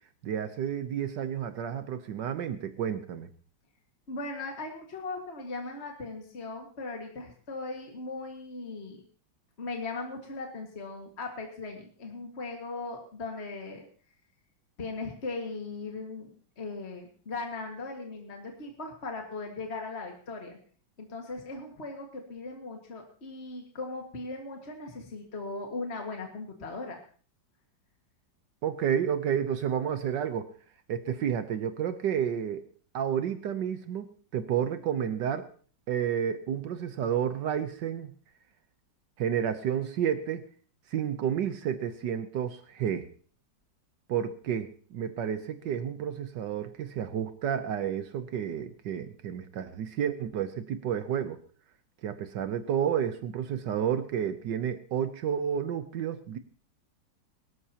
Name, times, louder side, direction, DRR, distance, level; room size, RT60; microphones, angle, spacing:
voice 1, 0.2-3.3 28.6-30.5 30.9-32.6 32.9-34.1 34.3-35.5 35.9-38.1 39.2-40.5 40.9-43.1 44.1-51.4 52.0-56.4, right 9 dB, 75° right, 10 dB, 1.5 m, -31 dB
voice 2, 4.1-9.0 9.6-13.9 14.8-20.6 21.0-27.0, left 3 dB, 35° left, 2 dB, 2.1 m, -38 dB
22.5 x 13.0 x 2.9 m, 0.42 s
omnidirectional pair, 2.0 m